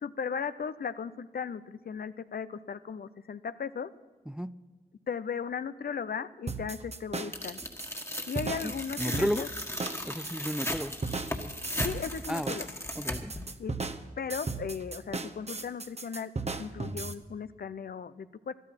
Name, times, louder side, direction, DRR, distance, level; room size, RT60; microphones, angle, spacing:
voice 1, 0.0-3.9 5.1-7.6 8.3-9.5 11.8-12.7 13.6-13.8 14.2-16.3 16.6-18.5, left 6 dB, 65° left, 14 dB, 0.6 m, -36 dB
sound 1, 6.5-17.1, right 3 dB, 40° right, 0.9 m, -36 dB
Tearing, 7.3-13.5, left 1 dB, 15° left, 1.6 m, -37 dB
voice 2, 8.6-9.4 10.0-10.9 12.3-12.5 12.9-13.3, equal, 5° right, 15 dB, 0.5 m, -33 dB
12.5 x 12.5 x 5.8 m, 1.4 s
cardioid pair, 45°, 17 cm